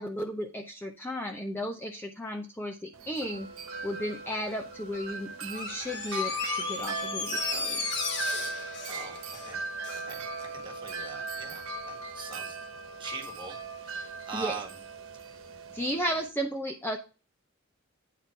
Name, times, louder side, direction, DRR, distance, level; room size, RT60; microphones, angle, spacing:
voice 1, 0.0-3.5 3.8-7.9 14.3-14.5 15.7-17.0, equal, 10° left, 1 dB, 0.7 m, -34 dB
Wind chime, 2.9-16.3, right 2 dB, 90° right, 1.1 m, -38 dB
Door, 5.5-10.1 10.4-10.5, left 4 dB, 55° left, 1.2 m, -35 dB
voice 2, 8.5-9.7 10.0-12.7 13.0-14.8 15.1-15.6, right 5 dB, 25° right, 0 dB, 1.5 m, -43 dB
9.2 x 4.3 x 4.5 m, 0.32 s
head